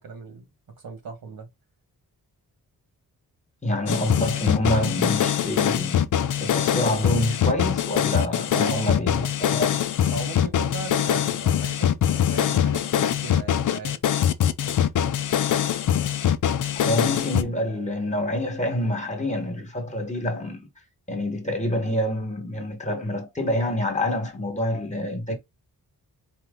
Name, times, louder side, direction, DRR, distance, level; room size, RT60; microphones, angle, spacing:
voice 1, 0.0-1.5 8.5-8.9 9.6-9.8 10.1-14.0, right 4 dB, 70° right, 1.7 m, -37 dB
voice 2, 3.6-6.1 6.4-9.7 16.7-20.6 21.1-25.4, left 1 dB, 20° left, 1.3 m, -27 dB
sound 1, 3.9-17.4, left 9 dB, 55° left, 0.5 m, -23 dB
4.5 x 2.9 x 3.8 m
wide cardioid pair, 150°, 36 cm